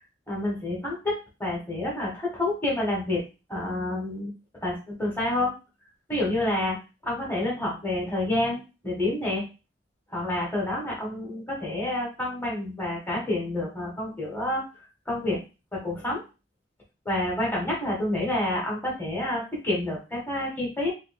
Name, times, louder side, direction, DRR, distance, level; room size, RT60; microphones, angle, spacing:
voice 1, 0.3-3.2 3.5-4.3 4.6-5.5 6.1-6.8 7.0-9.5 10.1-14.6 15.1-15.4 15.7-16.2 17.0-20.9, left 1 dB, 10° left, -3 dB, 1.4 m, -28 dB
3.7 x 2.8 x 3.4 m, 0.30 s
head